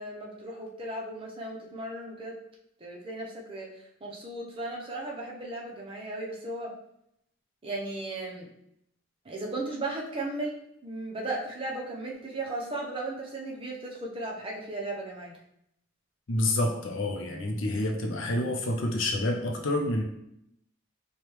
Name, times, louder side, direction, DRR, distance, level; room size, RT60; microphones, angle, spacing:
voice 1, 0.0-2.3 2.8-3.7 4.0-6.7 7.6-8.5 9.2-10.6 10.8-15.4, right 2 dB, 25° right, -2 dB, 0.7 m, -36 dB
voice 2, 16.3-20.0, left 1 dB, 65° left, 2 dB, 0.6 m, -28 dB
4.9 x 2.3 x 3.1 m, 0.77 s
head